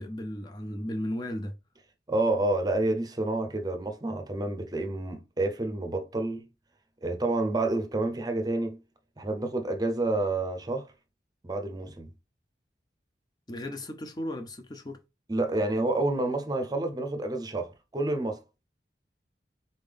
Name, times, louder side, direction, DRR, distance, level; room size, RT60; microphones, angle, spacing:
voice 1, 0.0-1.6 13.5-15.0, left 1 dB, 25° left, 0.5 m, -35 dB
voice 2, 2.1-6.5 7.0-8.8 9.2-10.9 11.4-12.1 15.3-18.4, right 2 dB, 20° right, 0.6 m, -29 dB
4.0 x 3.7 x 3.4 m
head